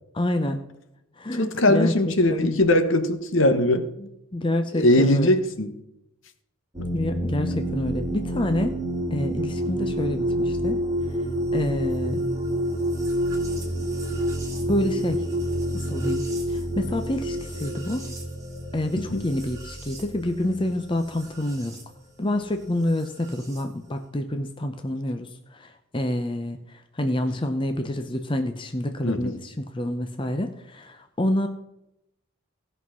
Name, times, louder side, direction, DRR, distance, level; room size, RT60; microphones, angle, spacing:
voice 1, 0.1-0.6 1.2-1.9 2.3-2.6 4.0-5.3 6.9-8.8 9.1-10.8 11.5-12.2 14.7-15.2 15.7-18.1 18.7-21.8 22.2-31.5, left 1 dB, 25° left, 7 dB, 0.6 m, -28 dB
voice 2, 1.4-3.9 4.7-5.7 19.0-19.2 29.0-29.4, left 1 dB, 65° left, 9 dB, 1.1 m, -21 dB
sound 1, 6.7-21.8 23.0-23.6, equal, 15° right, 2.4 m, -29 dB
16.5 x 5.5 x 6.2 m, 0.85 s
head